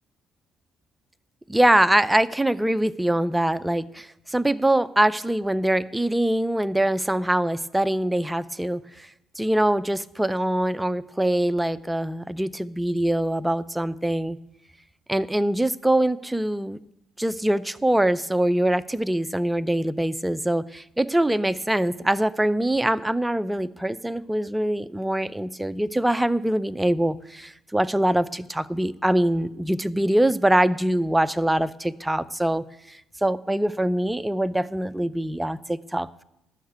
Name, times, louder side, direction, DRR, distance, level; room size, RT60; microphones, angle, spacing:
voice 1, 1.5-9.1 9.4-14.4 15.1-16.8 17.2-36.2, right 1 dB, 10° right, 14 dB, 0.6 m, -23 dB
12.0 x 6.6 x 8.2 m, 0.84 s
supercardioid pair, 60°, 0 cm